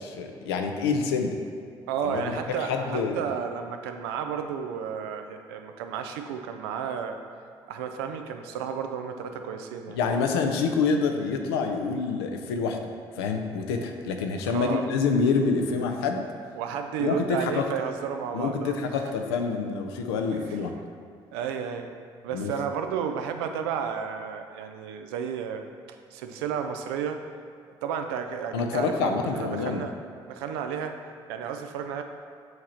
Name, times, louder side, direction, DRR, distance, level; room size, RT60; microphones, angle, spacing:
voice 1, 0.0-1.4 2.0-3.1 9.9-12.8 13.2-16.3 17.0-17.6 18.3-20.7 22.3-22.5 28.5-29.9, left 5 dB, 90° left, 4 dB, 0.4 m, -27 dB
voice 2, 1.9-7.2 7.7-10.0 14.5-14.9 16.5-19.0 20.3-20.6 21.3-21.9 22.2-27.2 27.8-29.9 30.3-31.0 31.3-32.0, right 7 dB, 85° right, 6 dB, 0.4 m, -32 dB
7.6 x 2.9 x 4.3 m, 2.2 s
hypercardioid pair, 50°, 13 cm